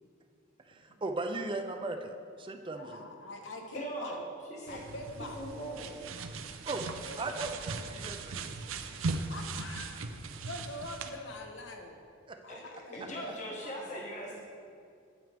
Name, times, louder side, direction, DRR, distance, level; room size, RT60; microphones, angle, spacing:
voice 1, 0.6-3.1 6.7-6.9 7.2-8.6 12.3-12.6 13.0-13.1, right 2 dB, 25° right, 6 dB, 0.4 m, -38 dB
voice 2, 2.7-4.2 4.7-5.4 6.8-7.5 7.8-8.3 9.3-10.1 10.4-12.0 12.4-13.3 13.6-14.0, left 1 dB, 65° left, 3 dB, 1.1 m, -44 dB
voice 3, 3.7-4.2 4.5-4.8 5.3-6.0 12.5-12.6 12.9-14.4, right 1 dB, 40° left, -2 dB, 1.2 m, -40 dB
sound 1, 4.7-11.1, right 3 dB, 90° right, 0.6 m, -39 dB
9.0 x 8.8 x 3.5 m, 2.4 s
head